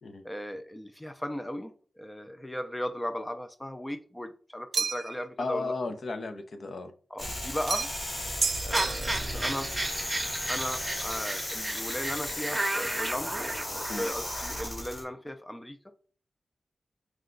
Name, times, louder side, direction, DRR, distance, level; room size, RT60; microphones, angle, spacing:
voice 1, 0.2-5.8 7.1-8.3 8.6-9.7 10.5-13.4 13.8-15.9, equal, 10° left, 8 dB, 0.4 m, -37 dB
sound 1, 4.7-5.2 7.7-8.1 8.4-9.4, right 5 dB, 75° right, 0.3 m, -31 dB
voice 2, 5.4-6.9 13.9-14.1, left 3 dB, 65° left, 8 dB, 0.5 m, -34 dB
sound 2, 7.2-15.0, left 1 dB, 45° left, 1.2 m, -36 dB
sound 3, 8.7-14.7, right 1 dB, 15° right, 0.7 m, -34 dB
4.6 x 2.2 x 3.8 m, 0.42 s
wide cardioid pair, 125°, 0 cm